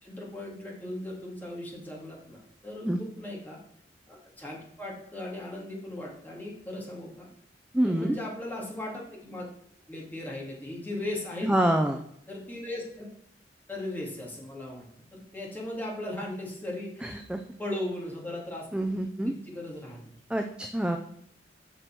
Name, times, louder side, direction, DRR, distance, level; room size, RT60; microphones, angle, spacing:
voice 1, 0.0-3.6 4.1-7.3 7.8-9.5 9.9-11.6 12.3-13.1 13.7-14.9 15.1-17.2 17.6-18.7 19.2-20.1, left 1 dB, 10° left, -3 dB, 2.6 m, -37 dB
voice 2, 7.7-8.2 11.4-12.0 17.0-17.4 18.7-19.3 20.3-21.0, right 1 dB, 5° right, 5 dB, 0.5 m, -26 dB
6.8 x 6.0 x 6.0 m, 0.71 s
head